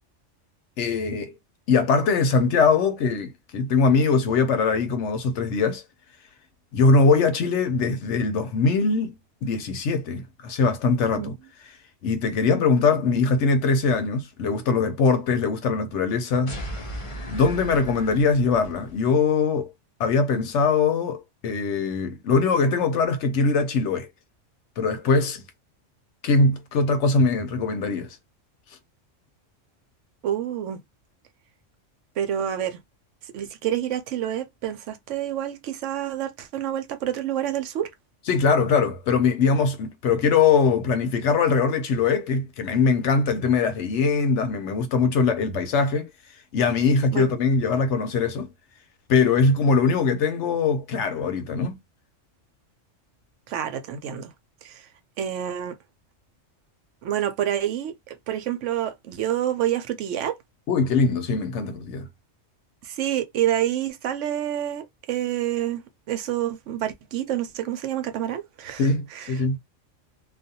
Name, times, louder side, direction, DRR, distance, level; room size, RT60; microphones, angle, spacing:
voice 1, 0.8-1.3 1.7-5.8 6.7-11.3 12.0-16.5 17.3-19.7 20.0-24.1 24.8-25.4 26.2-28.2 38.3-46.1 46.5-48.5 49.1-51.8 60.7-62.1 68.8-69.6, left 4 dB, 75° left, 0.9 m, -22 dB
sound 1, 16.5-19.0, equal, 40° left, 0.5 m, -36 dB
voice 2, 30.2-30.8 32.2-32.8 33.2-37.9 47.1-47.4 53.5-54.3 54.6-54.9 55.2-55.8 57.0-60.4 62.8-69.6, right 11 dB, 75° right, 0.9 m, -28 dB
2.4 x 2.2 x 2.7 m
omnidirectional pair, 1.3 m